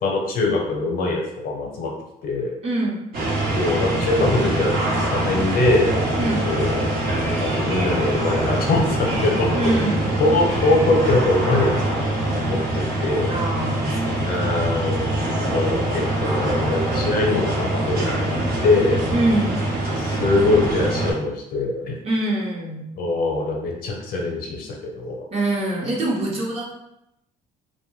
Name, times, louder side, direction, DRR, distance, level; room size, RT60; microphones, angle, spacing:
voice 1, 0.0-1.9 2.2-2.6 3.5-4.8 5.1-6.0 6.5-6.8 7.3-9.7 10.2-12.1 12.4-13.4 14.2-15.1 15.4-19.1 20.0-22.0 23.0-25.3, left 2 dB, 60° left, 0 dB, 0.7 m, -23 dB
voice 2, 2.6-3.0 6.2-6.5 9.5-10.1 13.3-14.7 19.1-19.6 22.0-22.9 25.3-26.7, right 1 dB, 35° right, -3 dB, 0.9 m, -24 dB
sound 1, 3.1-21.1, right 1 dB, 65° right, 0.9 m, -23 dB
2.6 x 2.2 x 3.1 m, 0.82 s
cardioid pair, 110°, 17 cm